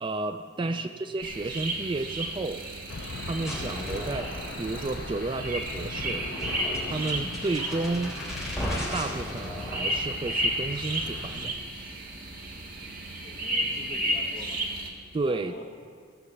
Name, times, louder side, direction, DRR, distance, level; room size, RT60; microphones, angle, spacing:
voice 1, 0.0-2.7 3.2-4.3 4.6-6.3 6.9-8.1 8.6-11.6 15.1-15.6, right 3 dB, 25° right, 8 dB, 0.3 m, -32 dB
voice 2, 0.6-1.0 13.2-14.6 15.2-15.6, left 1 dB, 30° left, 0 dB, 1.5 m, -46 dB
sound 1, 1.2-14.9, right 1 dB, 50° right, 1.6 m, -33 dB
Aircraft / Engine, 2.9-11.5, left 3 dB, 65° left, 0.5 m, -41 dB
sound 2, 3.4-11.5, equal, ahead, 3.3 m, -37 dB
16.5 x 6.9 x 7.1 m, 2.2 s
head